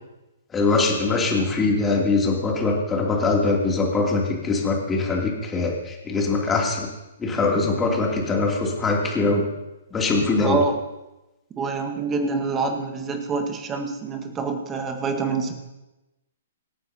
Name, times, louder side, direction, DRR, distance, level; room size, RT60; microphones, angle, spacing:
voice 1, 0.5-6.9 7.2-9.5 9.9-10.6, left 3 dB, 15° left, -1 dB, 2.9 m, -22 dB
voice 2, 10.3-10.8 11.6-15.6, right 4 dB, 20° right, 5 dB, 1.6 m, -26 dB
25.0 x 9.4 x 2.9 m, 1.0 s
hypercardioid pair, 125°, 0 cm